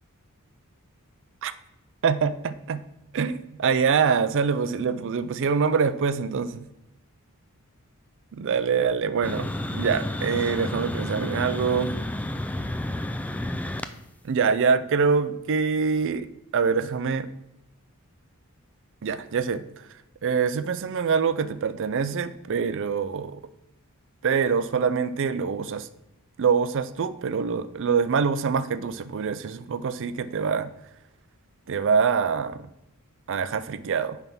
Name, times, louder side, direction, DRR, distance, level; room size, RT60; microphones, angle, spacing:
voice 1, 2.0-2.8 3.1-6.7 8.3-12.0 14.2-16.3 16.5-17.3 19.0-19.6 20.2-23.4 24.2-25.9 26.4-30.7 31.7-32.7 33.3-34.2, right 6 dB, 55° right, 13 dB, 0.4 m, -25 dB
sound 1, 9.2-13.9, left 1 dB, 5° left, 0.3 m, -31 dB
9.1 x 3.5 x 5.9 m, 0.90 s
head